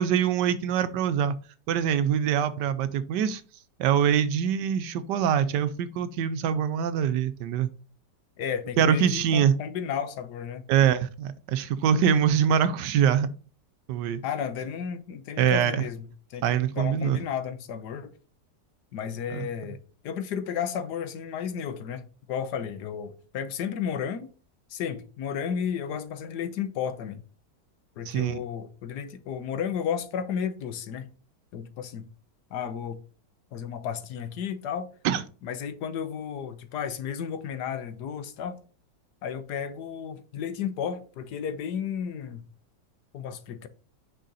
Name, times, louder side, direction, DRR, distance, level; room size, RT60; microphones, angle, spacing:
voice 1, 0.0-1.3 1.7-3.4 3.8-7.7 8.8-9.5 10.7-13.3 13.9-14.2 15.4-15.8 16.4-17.2 19.3-19.4 28.1-28.4 35.0-35.2, right 8 dB, 80° right, 1.2 m, -24 dB
voice 2, 8.4-10.6 14.2-18.1 18.9-19.8 20.0-24.3 24.7-27.2 28.0-31.1 31.5-32.1 32.5-33.0 33.5-34.9 35.4-38.6 39.2-42.5 43.1-43.7, left 8 dB, 70° left, 1.4 m, -33 dB
6.4 x 4.9 x 4.0 m
omnidirectional pair, 1.9 m